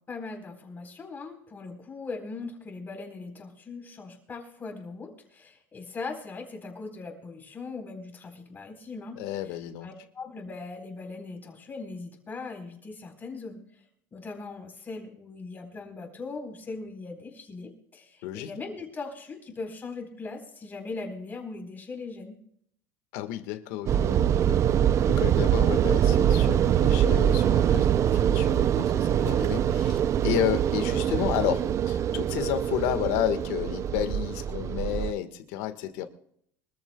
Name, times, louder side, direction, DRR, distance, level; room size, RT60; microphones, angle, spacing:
voice 1, 0.0-9.2 9.4-13.8 14.1-22.4, left 3 dB, 20° left, 3 dB, 4.1 m, -40 dB
voice 2, 9.2-9.9 18.2-18.5 23.1-24.7 25.0-36.1, left 12 dB, 75° left, 9 dB, 1.5 m, -31 dB
sound 1, 23.9-35.1, right 10 dB, 35° right, 0.4 m, -24 dB
25.0 x 14.0 x 2.3 m, 0.69 s
supercardioid pair, 130°, 9 cm